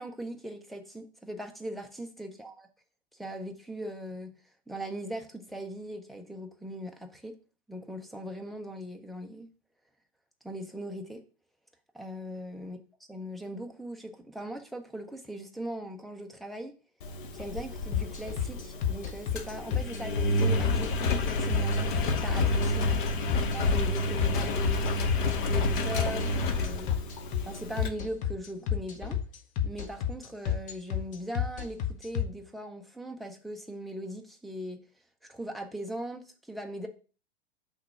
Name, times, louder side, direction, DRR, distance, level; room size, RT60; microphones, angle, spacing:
voice 1, 0.0-2.5 3.1-4.3 4.7-7.3 7.7-9.5 10.4-11.2 11.9-12.8 13.1-16.7 17.3-23.0 23.5-24.9 25.4-26.9 27.5-29.2 29.6-34.8 35.3-36.9, right 1 dB, ahead, 3 dB, 0.3 m, -39 dB
Engine, 17.0-27.9, left 1 dB, 50° left, 0.9 m, -29 dB
sound 1, 17.9-32.2, left 9 dB, 25° left, 0.7 m, -30 dB
5.7 x 3.1 x 5.5 m, 0.37 s
figure-of-eight pair, 100°, 32 cm